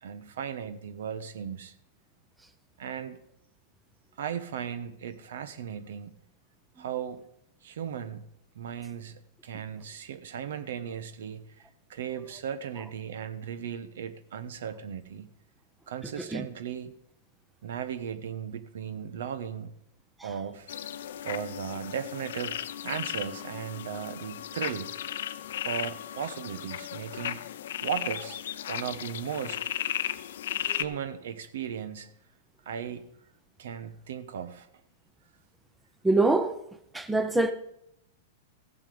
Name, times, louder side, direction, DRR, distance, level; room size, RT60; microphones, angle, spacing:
voice 1, 0.0-1.7 2.8-3.2 4.2-6.1 6.8-7.2 7.6-8.3 8.5-15.3 15.9-16.9 17.6-19.7 20.2-20.7 21.2-24.9 25.6-27.4 27.8-28.4 28.7-29.6 30.6-32.1 32.6-33.1 33.6-34.7, right 8 dB, 75° right, 1.1 m, -36 dB
sound 1, 20.7-30.8, left 11 dB, 75° left, 0.6 m, -35 dB
voice 2, 36.0-36.6 36.9-37.5, right 2 dB, 5° right, 0.7 m, -25 dB
15.0 x 7.3 x 5.1 m
supercardioid pair, 150°, 0 cm